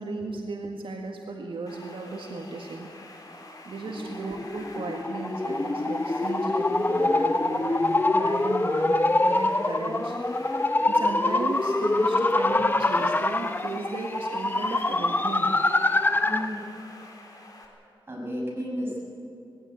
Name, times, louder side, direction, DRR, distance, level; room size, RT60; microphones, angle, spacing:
voice 1, 0.0-2.9 3.7-15.6, right 3 dB, 75° right, 1 dB, 1.9 m, -35 dB
sound 1, 1.7-17.7, left 2 dB, 40° left, 3.5 m, -47 dB
sound 2, 3.9-16.6, left 2 dB, 20° left, 0.8 m, -25 dB
voice 2, 16.2-16.6 18.1-19.0, equal, 25° right, -2 dB, 6.3 m, -33 dB
20.0 x 16.5 x 9.3 m, 2.8 s
wide cardioid pair, 130°, 9 cm